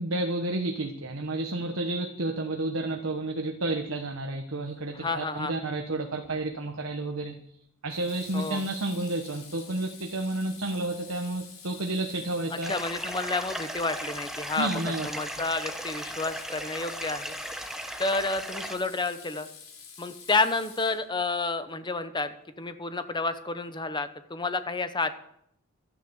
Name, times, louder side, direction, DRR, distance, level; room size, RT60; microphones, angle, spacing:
voice 1, 0.0-7.3 7.8-12.7 14.6-15.1, right 2 dB, 75° right, 4 dB, 1.2 m, -31 dB
voice 2, 4.9-5.5 8.3-8.6 12.7-14.7 15.0-17.4 18.0-19.5 20.0-25.2, left 3 dB, 20° left, 10 dB, 1.0 m, -30 dB
Water tap faucet / Sink (filling or washing), 6.2-6.6 7.9-21.3, left 5 dB, 80° left, 4.3 m, -48 dB
sound 1, 12.6-18.8, right 1 dB, ahead, 1.1 m, -37 dB
12.5 x 10.0 x 7.1 m, 0.72 s
head